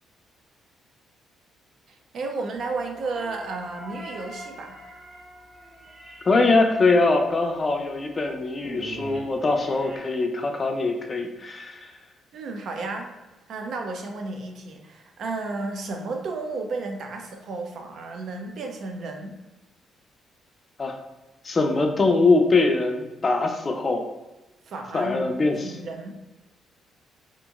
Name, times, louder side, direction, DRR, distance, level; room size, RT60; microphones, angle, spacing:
voice 1, 1.9-4.8 12.3-13.1 13.5-19.4 24.7-26.2, right 3 dB, 65° right, 3 dB, 0.4 m, -33 dB
sound 1, 2.5-10.0, equal, 30° right, 0.9 m, -43 dB
voice 2, 6.2-11.9 20.8-20.9 21.4-24.1 24.9-25.8, left 3 dB, 35° left, 3 dB, 0.4 m, -22 dB
2.9 x 2.5 x 2.3 m, 1.1 s
cardioid pair, 90°, 0 cm